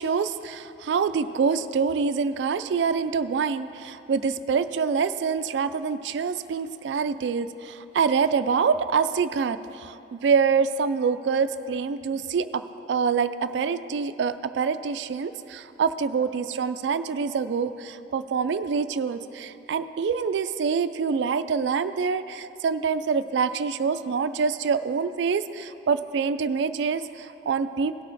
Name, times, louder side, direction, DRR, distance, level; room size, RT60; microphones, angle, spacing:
voice 1, 0.0-12.6 12.9-28.0, right 5 dB, 75° right, 12 dB, 0.3 m, -26 dB
17.5 x 6.3 x 4.0 m, 2.9 s
head